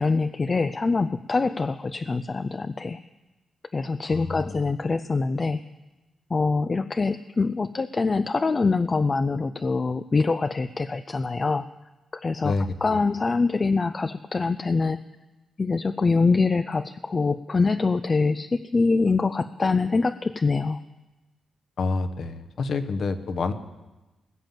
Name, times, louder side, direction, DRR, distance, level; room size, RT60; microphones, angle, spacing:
voice 1, 0.0-3.0 3.7-5.6 6.3-11.7 12.1-12.5 12.8-15.0 15.6-20.8, left 4 dB, 35° left, 11 dB, 0.4 m, -24 dB
voice 2, 4.1-4.7 12.4-13.0 21.8-23.5, left 4 dB, 60° left, 10 dB, 1.0 m, -28 dB
19.5 x 7.5 x 7.5 m, 1.1 s
cardioid pair, 90°, 0 cm